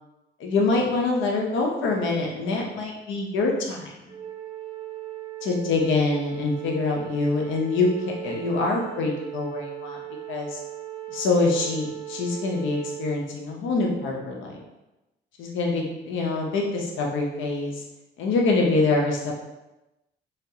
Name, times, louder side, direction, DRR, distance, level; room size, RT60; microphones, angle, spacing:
voice 1, 0.4-3.9 5.4-7.9 8.2-10.0 10.3-10.6 11.1-14.6 15.4-17.7 18.2-19.2, left 3 dB, 75° left, 0 dB, 0.6 m, -25 dB
Wind instrument woodwind instrument, 4.1-13.2, right 14 dB, 30° right, 0.6 m, -38 dB
3.3 x 2.3 x 2.7 m, 0.97 s
cardioid pair, 90°, 20 cm